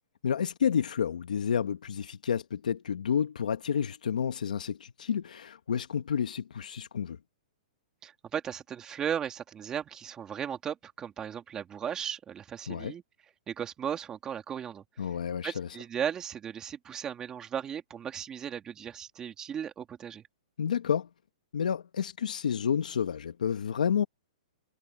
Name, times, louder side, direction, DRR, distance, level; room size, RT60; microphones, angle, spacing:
voice 1, 0.2-7.2 12.7-12.9 15.0-15.7 20.6-21.1 21.5-24.0, left 7 dB, 90° left, 1.1 m, -30 dB
voice 2, 8.0-13.0 13.5-15.1 15.4-20.3, right 8 dB, 15° right, 2.7 m, -36 dB
hypercardioid pair, 155°, 4 cm